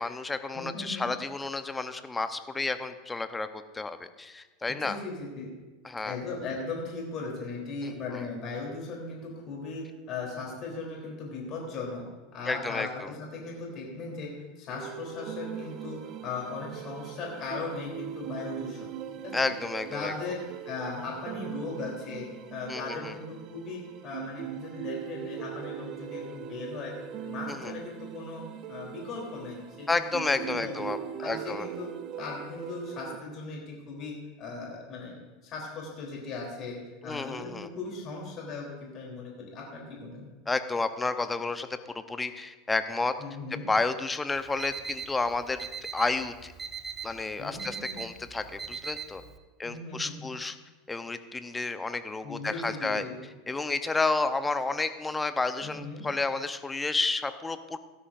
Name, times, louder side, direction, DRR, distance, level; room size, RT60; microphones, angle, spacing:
voice 1, 0.0-5.0 5.8-6.2 7.8-8.2 12.5-13.1 19.3-20.1 22.7-23.2 27.5-27.7 29.9-31.7 37.0-37.7 40.5-41.7 42.1-43.1 43.7-45.7 45.9-46.5 47.0-49.2 49.6-50.6 50.9-53.0 53.5-57.8, left 3 dB, 15° left, 10 dB, 0.8 m, -31 dB
voice 2, 0.5-1.1 4.7-5.5 6.0-12.1 12.3-18.9 19.2-19.3 19.9-20.4 20.7-27.0 27.2-30.8 31.2-31.9 32.2-35.2 35.4-40.3 43.2-43.7 47.4-48.0 49.6-50.1 52.2-53.1 55.6-56.0, left 3 dB, 45° left, -2 dB, 3.5 m, -38 dB
sound 1, 14.7-33.2, right 9 dB, 45° right, 0.9 m, -40 dB
Alarm, 44.4-49.4, right 6 dB, 20° right, 0.9 m, -40 dB
17.0 x 12.5 x 2.6 m, 1.2 s
hypercardioid pair, 85°, 0 cm